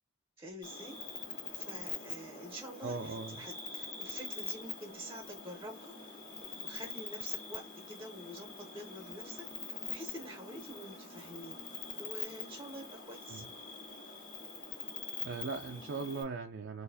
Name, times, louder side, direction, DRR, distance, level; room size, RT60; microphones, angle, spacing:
voice 1, 0.4-1.0 1.5-11.6 12.0-13.4, equal, 15° right, 0.6 m, -48 dB
Cricket, 0.6-16.2, left 5 dB, 45° left, 1.5 m, -44 dB
voice 2, 2.8-3.5 13.3-13.5 15.2-16.8, right 4 dB, 65° right, 0.4 m, -39 dB
4.0 x 2.5 x 2.7 m
head